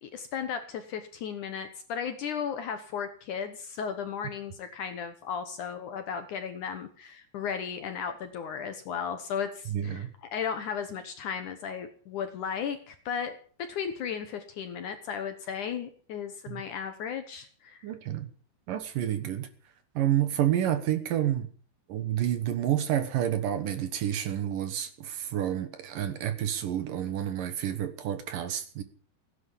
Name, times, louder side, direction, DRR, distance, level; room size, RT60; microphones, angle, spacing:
voice 1, 0.0-17.9, left 7 dB, 65° left, 8 dB, 2.1 m, -35 dB
voice 2, 9.7-10.1 16.5-16.6 17.8-18.3 18.7-19.5 20.0-21.5 21.9-28.8, right 11 dB, 65° right, 10 dB, 2.6 m, -29 dB
16.5 x 10.5 x 7.4 m, 0.44 s
omnidirectional pair, 4.7 m